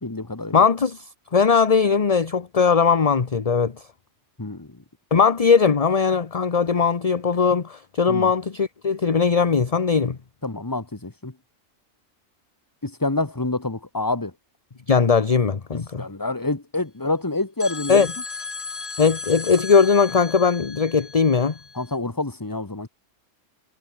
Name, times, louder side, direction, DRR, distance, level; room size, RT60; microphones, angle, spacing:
voice 1, 0.0-0.6 4.4-4.8 8.1-8.3 10.4-11.3 12.8-14.3 16.0-18.1 21.7-22.9, left 2 dB, 15° left, 1.5 m, -27 dB
voice 2, 0.5-3.9 5.1-10.2 14.9-16.1 17.9-18.1 19.0-21.6, left 5 dB, 30° left, 1.0 m, -19 dB
sound 1, 17.6-22.0, left 4 dB, 50° left, 2.5 m, -35 dB
omnidirectional pair, 1.4 m